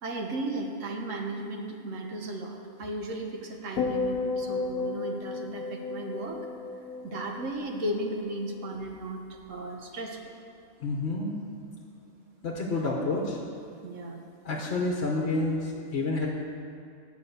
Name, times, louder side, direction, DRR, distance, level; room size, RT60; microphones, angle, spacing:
voice 1, 0.0-6.4 7.0-10.3 13.8-14.2, right 1 dB, 65° right, 2 dB, 1.3 m, -35 dB
sound 1, 3.8-8.2 8.5-8.9, left 4 dB, 80° left, 1.1 m, -33 dB
voice 2, 10.8-11.3 12.4-13.4 14.4-16.3, left 2 dB, 50° left, -1 dB, 1.1 m, -29 dB
9.9 x 5.4 x 8.0 m, 2.3 s
omnidirectional pair, 1.5 m